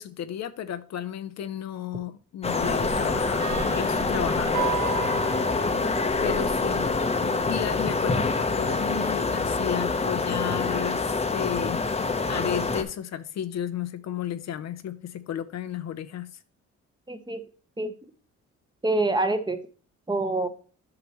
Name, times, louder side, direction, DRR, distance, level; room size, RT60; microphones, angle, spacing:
voice 1, 0.0-4.7 6.2-11.8 12.3-16.3, left 9 dB, 60° left, 0.6 m, -33 dB
sound 1, 2.4-12.8, left 3 dB, 20° left, 0.8 m, -26 dB
sound 2, 2.6-7.6, right 6 dB, 80° right, 1.2 m, -35 dB
voice 2, 17.1-17.4 17.8-17.9 18.8-19.6 20.1-20.5, right 2 dB, 15° right, 0.9 m, -25 dB
8.8 x 5.9 x 3.0 m
cardioid pair, 90°, 30 cm